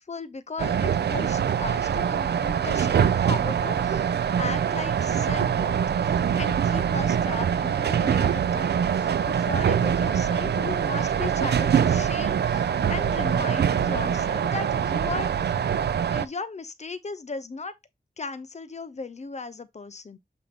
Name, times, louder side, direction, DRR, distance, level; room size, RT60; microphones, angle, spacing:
voice 1, 0.0-15.5 16.0-17.8 18.2-20.2, left 4 dB, 45° left, 0.7 m, -37 dB
sound 1, 0.6-16.3, right 8 dB, 90° right, 0.4 m, -24 dB
7.2 x 2.6 x 5.1 m
wide cardioid pair, 110°, 17 cm